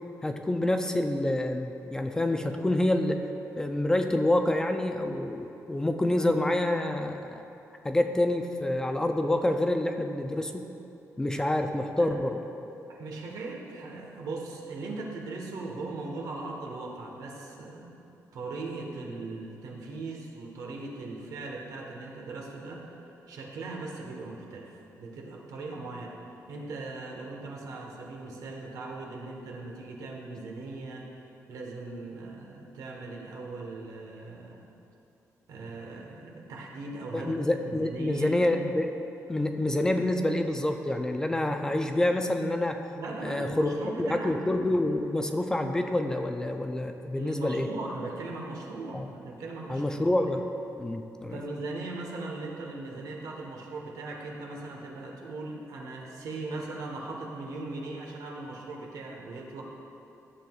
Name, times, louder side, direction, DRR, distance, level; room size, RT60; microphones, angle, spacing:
voice 1, 0.2-3.2 3.6-7.4 7.8-10.6 11.2-12.3 37.1-39.0 39.3-42.8 43.2-47.7 48.9-49.1 49.7-50.5 50.8-51.4, left 1 dB, 10° left, 5 dB, 0.3 m, -27 dB
voice 2, 12.9-18.0 18.3-22.9 23.3-26.2 26.5-31.1 31.5-34.6 35.5-38.3 43.0-44.3 47.2-49.8 51.3-59.6, right 3 dB, 85° right, 0 dB, 1.2 m, -39 dB
13.0 x 7.6 x 2.4 m, 2.9 s
wide cardioid pair, 175°, 6 cm